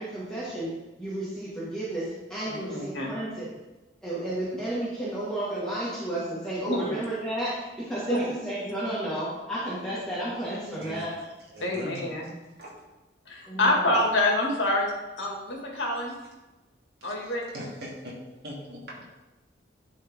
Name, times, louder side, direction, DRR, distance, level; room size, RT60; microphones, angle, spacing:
voice 1, 0.0-3.6 4.0-11.2 13.5-13.9, right 1 dB, 5° left, -10 dB, 1.8 m, -32 dB
voice 2, 2.5-3.1 6.7-7.0 8.1-8.3 11.6-12.3 13.3-14.9 15.2-16.1 17.0-17.5, left 1 dB, 80° left, -2 dB, 2.1 m, -27 dB
voice 3, 10.8-12.1 12.6-12.7 17.0-19.2, equal, 55° right, -5 dB, 2.5 m, -41 dB
10.5 x 4.5 x 3.7 m, 1.1 s
head